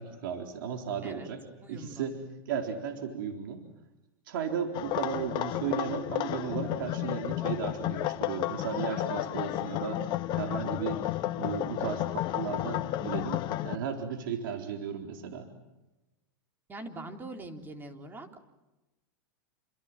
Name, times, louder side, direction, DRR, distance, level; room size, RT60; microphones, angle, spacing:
voice 1, 0.0-2.2 2.5-3.6 4.3-11.0 11.3-15.5, right 7 dB, 75° right, 3 dB, 4.0 m, -35 dB
voice 2, 1.6-2.1 16.7-18.4, right 2 dB, 15° right, 4 dB, 3.9 m, -43 dB
sound 1, 4.7-13.8, left 14 dB, 45° left, 1.3 m, -32 dB
28.5 x 27.5 x 7.5 m, 1.0 s
hypercardioid pair, 120°, 11 cm